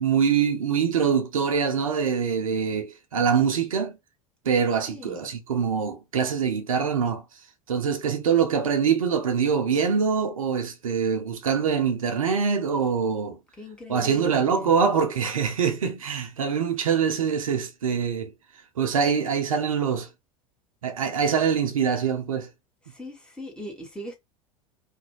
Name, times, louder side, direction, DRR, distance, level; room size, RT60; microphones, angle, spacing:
voice 1, 0.0-4.0 4.5-7.2 7.7-13.4 13.9-18.3 18.8-20.1 20.8-22.5, right 6 dB, 70° right, 0.5 m, -24 dB
voice 2, 4.9-5.2 13.6-14.7 22.9-24.1, equal, 5° left, 0.9 m, -40 dB
2.5 x 2.1 x 2.8 m
figure-of-eight pair, 75°, 18 cm